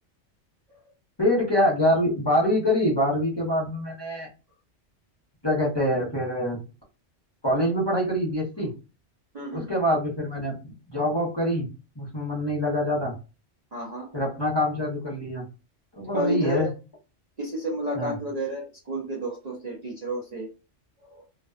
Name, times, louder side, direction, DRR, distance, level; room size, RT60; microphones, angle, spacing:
voice 1, 1.2-4.3 5.4-6.6 7.4-8.7 9.5-11.7 11.9-13.2 14.1-15.5 15.9-16.7 17.9-18.1, left 1 dB, 25° left, -5 dB, 0.8 m, -25 dB
voice 2, 9.3-9.8 13.7-14.1 16.1-16.7 17.4-20.5 21.0-21.2, equal, 45° right, -4 dB, 0.6 m, -31 dB
2.5 x 2.2 x 2.3 m, 0.31 s
omnidirectional pair, 1.2 m